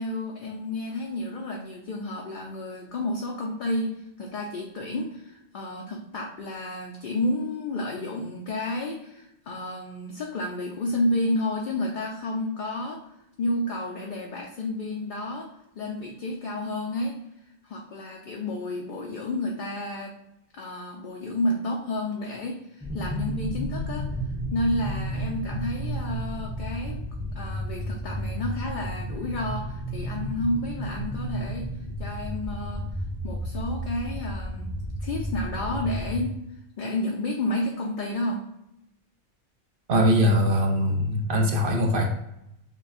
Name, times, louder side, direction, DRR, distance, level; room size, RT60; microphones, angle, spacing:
voice 1, 0.0-13.0 13.4-17.2 17.6-20.2 20.5-24.1 24.5-27.0 27.3-31.7 32.0-32.9 33.2-36.4 36.8-38.5, left 1 dB, 55° left, 0 dB, 0.6 m, -31 dB
sound 1, 22.8-36.2, equal, 10° left, 0.5 m, -32 dB
voice 2, 39.9-42.1, equal, 60° right, 2 dB, 0.8 m, -22 dB
6.3 x 2.2 x 2.5 m, 0.84 s
omnidirectional pair, 1.1 m